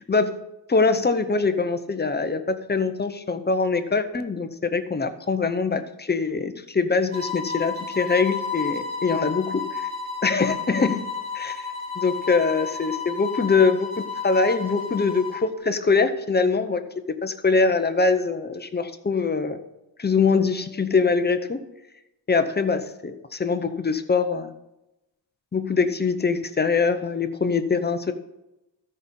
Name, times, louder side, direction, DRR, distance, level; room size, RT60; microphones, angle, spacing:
voice 1, 0.7-9.9 10.2-11.0 11.4-11.5 12.0-16.8 17.2-19.6 20.0-21.6 22.3-24.5 25.5-28.1, left 4 dB, 20° left, 9 dB, 0.7 m, -23 dB
sound 1, 7.1-15.5, left 5 dB, 25° right, 3.3 m, -32 dB
13.5 x 5.3 x 5.3 m, 0.93 s
wide cardioid pair, 120°, 46 cm